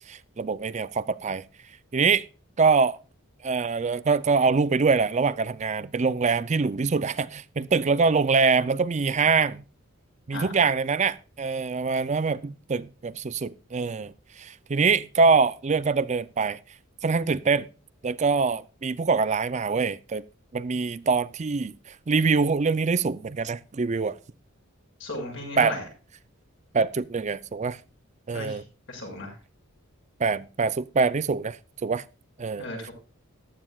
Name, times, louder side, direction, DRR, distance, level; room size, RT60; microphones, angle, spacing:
voice 1, 0.1-1.4 1.9-2.3 2.6-3.0 3.4-9.6 10.3-16.6 17.0-17.7 18.0-20.2 20.5-24.2 25.6-25.8 26.7-27.8 28.3-28.6 30.2-32.0 32.4-32.9, right 4 dB, 35° right, 0.4 m, -24 dB
voice 2, 25.0-25.8 28.3-28.6 28.9-29.3 32.6-32.9, left 1 dB, 60° left, 6.3 m, -35 dB
15.0 x 12.0 x 2.3 m
head